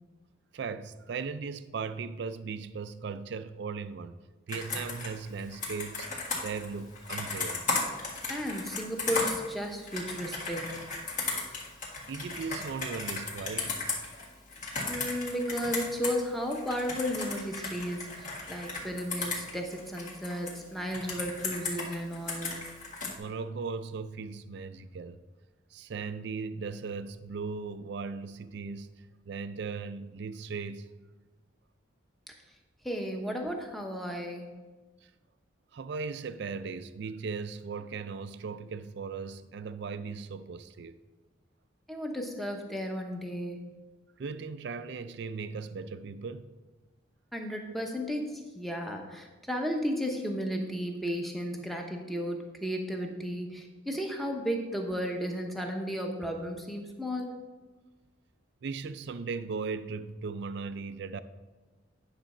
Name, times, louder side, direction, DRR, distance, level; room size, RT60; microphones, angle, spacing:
voice 1, 0.5-4.2 4.5-7.6 12.1-13.8 23.2-25.2 25.7-28.9 29.3-30.9 35.7-41.0 44.2-46.5 58.6-61.2, right 5 dB, 60° right, 0.4 m, -37 dB
Computer keyboard, 4.5-16.2 16.5-20.5 20.9-23.1, left 3 dB, 40° left, 1.7 m, -35 dB
voice 2, 8.3-10.8 14.9-22.6 32.3-32.4 32.8-34.5 41.9-43.7 47.3-57.4, equal, ahead, 0.8 m, -34 dB
10.0 x 4.0 x 6.0 m
head